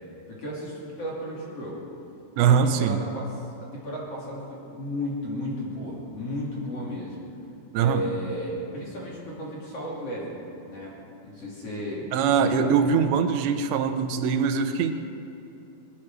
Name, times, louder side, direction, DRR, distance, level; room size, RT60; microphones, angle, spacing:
voice 1, 0.3-1.8 2.4-7.2 7.8-11.0 11.2-13.0, equal, 40° left, -5 dB, 3.3 m, -34 dB
voice 2, 2.4-3.0 7.7-8.0 12.1-14.9, right 7 dB, 90° right, 7 dB, 3.1 m, -22 dB
19.5 x 12.0 x 6.2 m, 2.7 s
omnidirectional pair, 5.0 m